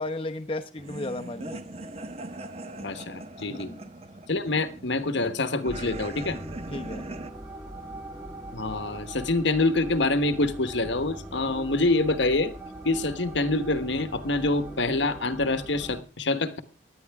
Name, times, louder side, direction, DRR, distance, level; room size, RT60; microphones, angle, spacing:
voice 1, 0.0-1.6 3.5-3.9 6.7-7.1, left 2 dB, 30° left, 0.8 m, -34 dB
sound 1, 0.8-7.3, right 2 dB, 35° right, 0.9 m, -40 dB
voice 2, 2.8-3.7 4.3-6.4 8.5-12.5 12.8-16.6, left 2 dB, 75° left, 1.3 m, -26 dB
sound 2, 5.7-16.0, right 1 dB, 10° right, 1.5 m, -41 dB
17.5 x 11.0 x 3.6 m
head